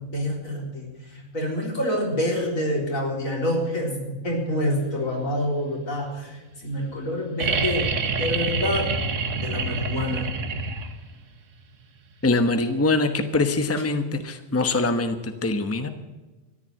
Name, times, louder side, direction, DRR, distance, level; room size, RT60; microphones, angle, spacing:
voice 1, 0.0-8.9 9.4-10.3, left 1 dB, 80° left, -1 dB, 4.3 m, -27 dB
sound 1, 7.4-11.2 12.9-13.0, right 4 dB, 70° right, 1.5 m, -27 dB
voice 2, 12.2-15.9, left 2 dB, 10° left, 8 dB, 0.9 m, -23 dB
14.0 x 11.0 x 7.6 m, 1.2 s
omnidirectional pair, 1.4 m